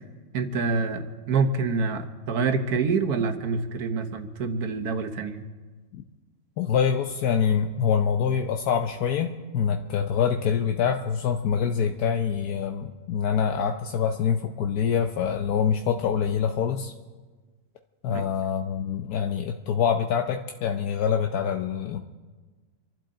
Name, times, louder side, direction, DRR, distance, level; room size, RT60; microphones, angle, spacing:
voice 1, 0.3-5.4 18.1-18.2, right 4 dB, 80° right, 7 dB, 1.6 m, -26 dB
voice 2, 6.6-16.9 18.0-22.0, left 7 dB, 80° left, 4 dB, 1.2 m, -25 dB
26.5 x 12.0 x 3.8 m, 1.4 s
omnidirectional pair, 1.6 m